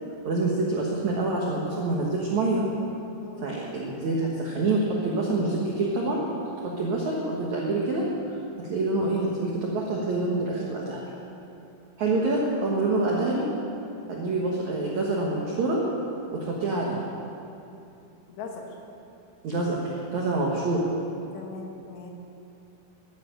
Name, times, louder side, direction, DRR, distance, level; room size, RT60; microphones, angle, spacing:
voice 1, 0.2-2.6 3.4-6.2 6.6-8.1 8.6-11.0 12.0-13.5 14.1-15.8 16.3-17.0 19.4-20.9, right 2 dB, 80° right, -3 dB, 1.6 m, -26 dB
voice 2, 3.2-3.5 12.8-13.1 18.3-18.8 21.3-22.1, left 4 dB, 65° left, 1 dB, 3.4 m, -40 dB
12.5 x 10.0 x 8.8 m, 2.7 s
omnidirectional pair, 5.7 m